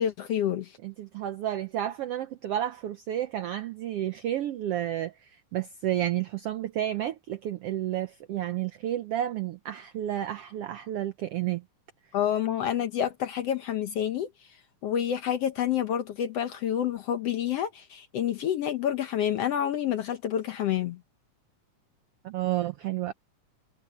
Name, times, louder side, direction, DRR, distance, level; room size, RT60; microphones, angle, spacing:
voice 1, 0.0-0.8 12.1-14.3 14.8-21.0, left 10 dB, 70° left, 1.6 m, -28 dB
voice 2, 0.8-11.6 22.2-23.1, right 12 dB, 85° right, 1.3 m, -31 dB
omnidirectional pair, 3.7 m